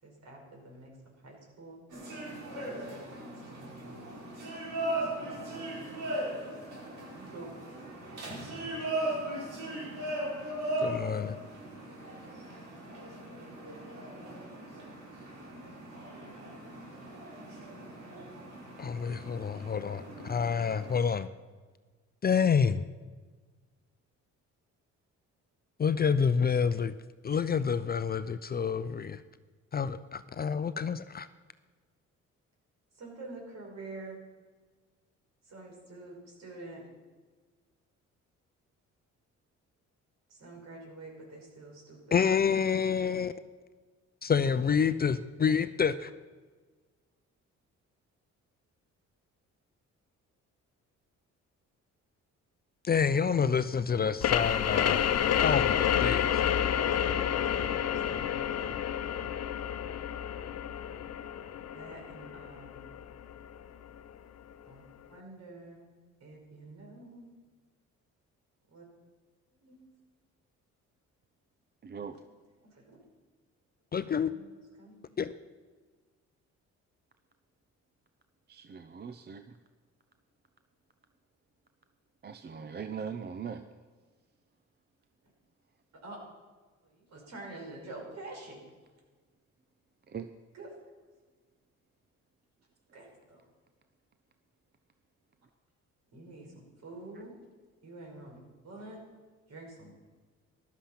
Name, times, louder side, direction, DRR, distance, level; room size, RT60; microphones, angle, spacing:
voice 1, 0.0-1.0 1.2-1.8 2.3-4.4 5.1-5.6 7.1-7.9 32.9-34.2 35.4-36.8 40.3-42.2 56.7-58.4 61.7-62.9 64.7-65.9 66.2-67.3 68.7-68.8 69.5-69.8 72.6-73.0 74.2-75.0 86.0-86.2 86.8-88.6 90.5-90.7 92.9-93.4 96.1-97.3 97.8-98.4 98.6-99.0 99.5-99.9, right 2 dB, 60° right, 0 dB, 5.5 m, -48 dB
sound 1, 1.9-21.0, right 1 dB, 80° right, 5.2 m, -38 dB
voice 2, 10.8-11.4 18.8-21.3 22.2-22.9 25.8-26.9 27.2-29.2 29.7-31.3 42.1-43.3 44.2-46.1 52.8-55.1 55.4-56.4 73.9-74.3 75.2-75.3, left 6 dB, 30° left, 13 dB, 0.5 m, -28 dB
sound 2, 54.2-63.6, left 9 dB, 55° left, 0.8 m, -29 dB
voice 3, 71.8-72.2 78.5-79.6 82.2-83.7 90.1-90.3 97.1-97.2, right 6 dB, 35° right, 9 dB, 0.7 m, -40 dB
14.5 x 12.0 x 5.9 m, 1.4 s
cardioid pair, 90°, 30 cm